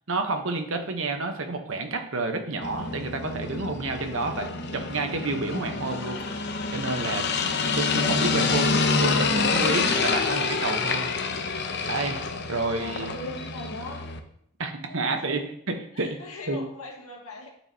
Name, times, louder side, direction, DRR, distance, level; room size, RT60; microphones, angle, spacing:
voice 1, 0.1-6.2 6.7-7.3 7.7-8.7 9.0-11.1 11.8-12.2 12.5-13.1 14.6-16.6, right 3 dB, 60° right, 5 dB, 0.9 m, -29 dB
sound 1, 2.6-14.2, left 4 dB, 50° left, 0.6 m, -27 dB
voice 2, 4.2-4.6 7.8-8.8 12.5-14.0 14.9-15.4 15.9-17.5, left 3 dB, 85° left, 0 dB, 1.7 m, -40 dB
12.5 x 4.6 x 2.8 m, 0.69 s
head